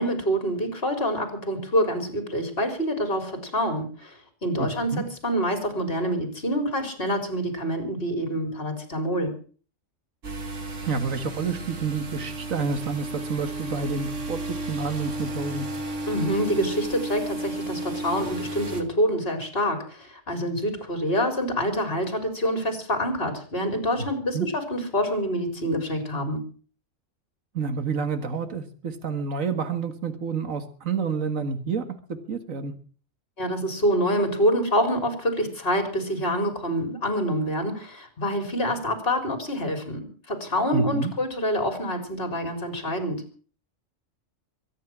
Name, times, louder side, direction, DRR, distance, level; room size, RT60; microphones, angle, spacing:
voice 1, 0.0-9.3 16.1-26.4 33.4-43.2, equal, 45° left, 7 dB, 4.2 m, -26 dB
voice 2, 4.6-5.0 10.8-14.4 14.7-15.7 24.0-24.1 24.3-24.5 27.5-31.8 32.3-32.7 40.7-41.1, right 5 dB, 80° right, 9 dB, 2.1 m, -29 dB
sound 1, 10.2-18.8, right 2 dB, 60° right, 2.5 m, -33 dB
23.5 x 9.6 x 6.1 m, 0.41 s
omnidirectional pair, 1.4 m